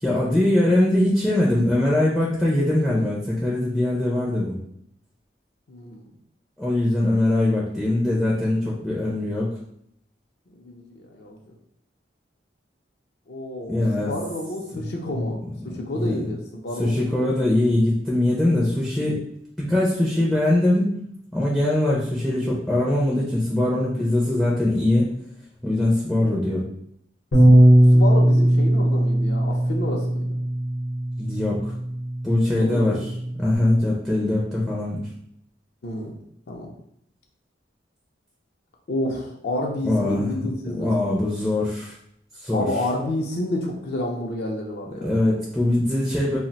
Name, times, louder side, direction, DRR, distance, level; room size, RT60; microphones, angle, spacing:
voice 1, 0.0-4.6 6.6-9.5 13.7-14.1 14.7-14.9 15.1-15.2 15.9-16.2 16.8-19.2 19.6-20.9 21.3-25.1 25.6-26.7 31.2-31.7 32.2-35.1 39.8-40.3 40.8-41.9 42.4-42.7 45.0-46.4, left 1 dB, ahead, -5 dB, 0.4 m, -22 dB
voice 2, 5.7-6.1 10.6-11.4 13.3-15.4 15.7-17.4 27.4-27.6 27.9-30.4 32.6-33.1 35.8-36.1 36.5-36.7 38.9-41.1 42.5-45.1, left 1 dB, 60° left, 0 dB, 0.5 m, -30 dB
Bass guitar, 27.3-33.6, right 1 dB, 80° left, 0.8 m, -19 dB
2.4 x 2.1 x 3.9 m, 0.72 s
head